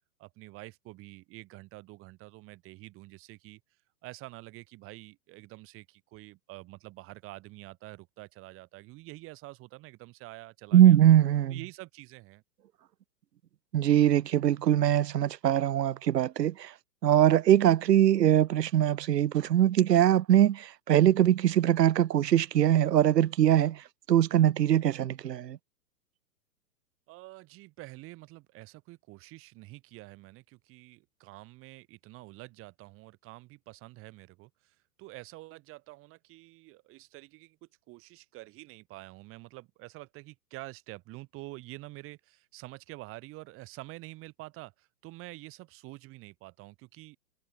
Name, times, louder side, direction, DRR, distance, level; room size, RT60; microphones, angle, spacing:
voice 1, 0.2-3.6 4.0-11.0 11.5-12.4 27.1-47.2, right 20 dB, 25° right, 5.3 m, -47 dB
voice 2, 10.7-11.6 13.7-16.7 17.0-23.8 24.1-25.6, right 11 dB, 80° right, 1.0 m, -22 dB
hypercardioid pair, 150°, 49 cm